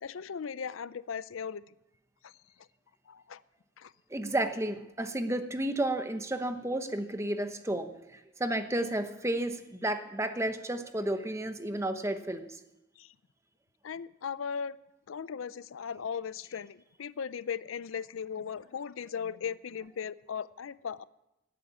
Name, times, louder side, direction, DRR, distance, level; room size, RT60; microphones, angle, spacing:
voice 1, 0.0-1.6 2.2-2.3 3.1-3.4 3.8-3.9 13.0-13.1 13.8-14.8 15.1-21.0, left 7 dB, 85° left, 18 dB, 0.5 m, -37 dB
voice 2, 4.1-12.6, right 1 dB, 15° right, 8 dB, 0.9 m, -32 dB
17.5 x 8.6 x 8.6 m, 0.93 s
head